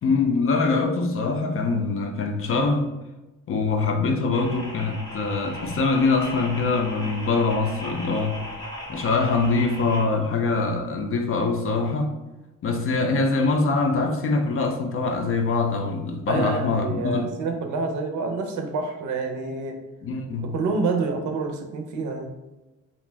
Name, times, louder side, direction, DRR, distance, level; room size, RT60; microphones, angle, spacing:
voice 1, 0.0-2.9 3.5-8.4 8.9-12.1 12.6-17.3 20.0-20.6, left 3 dB, 45° left, 4 dB, 0.5 m, -23 dB
sound 1, 4.3-10.0, left 1 dB, 15° left, 0.7 m, -37 dB
voice 2, 16.3-19.8 20.5-22.3, right 3 dB, 75° right, 4 dB, 0.6 m, -27 dB
2.5 x 2.2 x 3.2 m, 1.1 s
cardioid pair, 90°, 30 cm